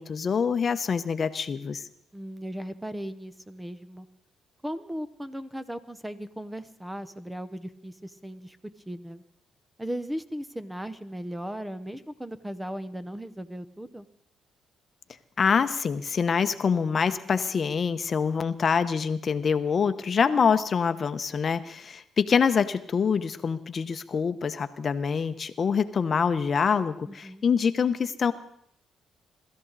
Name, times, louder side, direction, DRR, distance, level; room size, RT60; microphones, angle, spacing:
voice 1, 0.0-1.8 15.4-28.3, left 6 dB, 45° left, 11 dB, 0.9 m, -25 dB
voice 2, 2.1-4.1 4.6-8.6 8.9-9.2 9.8-14.0 27.1-27.4, equal, 10° right, 13 dB, 0.9 m, -37 dB
23.0 x 13.5 x 4.1 m, 0.68 s
cardioid pair, 90°, 0 cm